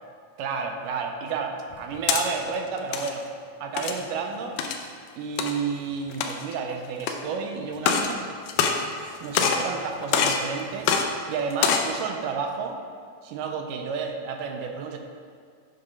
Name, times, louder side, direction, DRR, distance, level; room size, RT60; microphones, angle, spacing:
voice 1, 0.4-3.3 3.6-4.6 5.2-8.2 9.0-11.0 11.3-12.8 13.2-15.0, right 5 dB, 80° right, 4 dB, 2.1 m, -31 dB
sound 1, 1.7-2.2 2.8-3.1 3.8-4.0 4.6-4.8 5.4-5.5 6.1-6.5 7.0-7.1 7.8-8.1 8.5-9.1 9.3-9.7 10.1-10.4 10.8-11.0 11.5-11.9, left 6 dB, 80° left, 1.9 m, -24 dB
7.7 x 3.6 x 5.6 m, 2.1 s
omnidirectional pair, 3.8 m